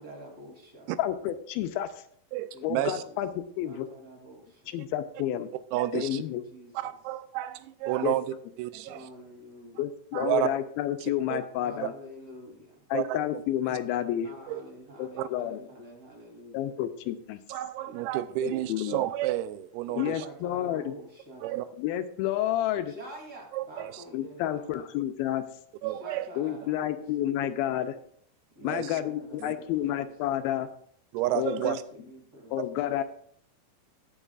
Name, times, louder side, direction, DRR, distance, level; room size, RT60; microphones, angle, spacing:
voice 1, 0.0-0.9 2.5-3.2 3.6-4.7 6.0-6.7 8.9-9.8 11.5-12.9 14.2-16.7 17.8-18.0 19.8-21.7 22.9-24.8 25.9-27.0 28.5-30.1 31.2-32.6, equal, 25° right, -1 dB, 3.0 m, -47 dB
voice 2, 1.0-1.9 2.6-3.3 3.6-3.9 4.7-5.5 5.9-6.4 8.0-8.2 9.8-11.9 12.9-14.3 15.0-15.6 16.5-17.4 18.4-19.1 20.0-20.9 21.8-22.9 24.1-25.5 26.4-28.0 28.6-30.7 31.3-31.8 32.5-33.0, left 12 dB, 85° left, 9 dB, 2.4 m, -30 dB
voice 3, 2.3-3.0 5.7-6.2 6.7-8.3 8.6-9.1 10.1-10.5 11.3-11.4 11.8-11.9 12.9-13.2 13.7-13.8 14.5-14.6 15.2-15.3 17.5-20.3 21.4-21.7 23.5-24.0 25.8-26.3 28.6-28.9 29.4-29.5 31.1-31.8, right 14 dB, 90° right, 13 dB, 2.5 m, -30 dB
19.0 x 7.1 x 2.4 m, 0.63 s
omnidirectional pair, 4.3 m